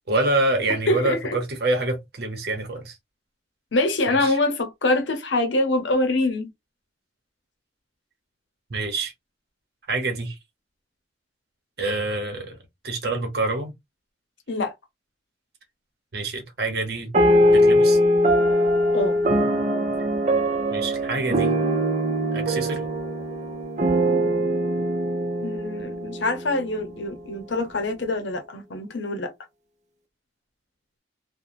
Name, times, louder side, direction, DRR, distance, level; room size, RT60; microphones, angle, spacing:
voice 1, 0.1-3.0 4.1-4.4 8.7-9.1 9.9-10.4 11.8-12.6 12.8-13.7 16.1-17.1 17.5-18.0 20.7-21.5 22.3-22.8, right 2 dB, 60° right, 0.9 m, -26 dB
voice 2, 0.9-1.4 3.7-6.5 14.5-14.7 18.9-19.2 25.4-29.3, left 2 dB, 85° left, 0.7 m, -24 dB
sound 1, 17.1-26.9, equal, 40° right, 0.6 m, -21 dB
3.2 x 2.2 x 2.6 m
head